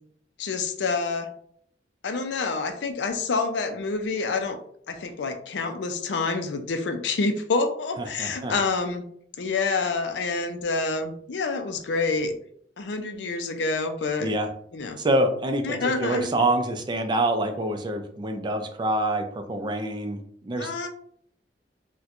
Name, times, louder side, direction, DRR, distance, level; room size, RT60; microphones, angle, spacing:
voice 1, 0.4-1.3 2.0-4.6 4.9-9.1 9.4-12.4 12.8-14.3 14.7-15.0 15.6-16.3 20.6-20.9, left 4 dB, 70° left, 7 dB, 0.5 m, -27 dB
voice 2, 8.0-8.6 14.2-14.5 15.0-20.7, right 1 dB, 25° right, 6 dB, 0.4 m, -26 dB
4.2 x 2.2 x 2.4 m, 0.63 s
head